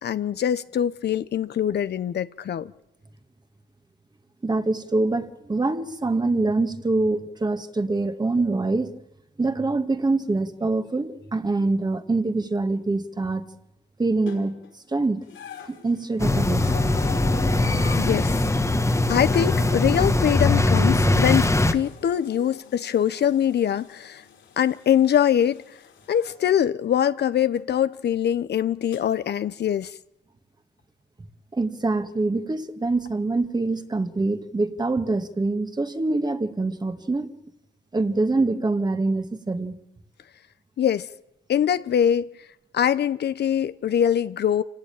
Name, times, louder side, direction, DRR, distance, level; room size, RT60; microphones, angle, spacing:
voice 1, 0.0-2.7 18.0-18.3 19.1-24.2 24.6-25.6 26.1-29.9 40.8-41.1 41.5-42.3 42.7-44.6, left 9 dB, 55° left, 0.9 m, -23 dB
voice 2, 4.4-9.0 9.4-13.5 14.0-14.6 14.9-15.3 15.7-16.7 31.5-37.3 37.9-39.7, right 3 dB, 20° right, 1.9 m, -25 dB
sound 1, 14.3-14.7 15.2-26.4 27.6-27.7 28.9-29.0, left 8 dB, 75° left, 4.6 m, -43 dB
sound 2, 16.2-21.7, left 2 dB, 15° left, 1.5 m, -21 dB
27.0 x 17.5 x 9.0 m
cardioid pair, 90°, 20 cm